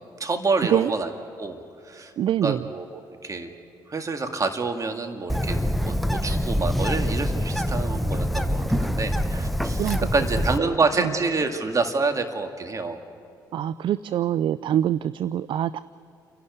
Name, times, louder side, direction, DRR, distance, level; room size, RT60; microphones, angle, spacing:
voice 1, 0.2-1.1 1.4-2.1 2.4-2.9 3.2-3.5 3.9-13.0, right 3 dB, 35° right, 5 dB, 2.1 m, -27 dB
voice 2, 2.2-2.7 9.8-10.1 10.6-11.1 13.5-15.8, right 11 dB, 55° right, 16 dB, 0.4 m, -25 dB
Bird, 5.3-10.6, equal, ahead, 0.9 m, -25 dB
29.0 x 11.5 x 9.5 m, 2.7 s
hypercardioid pair, 50°, 10 cm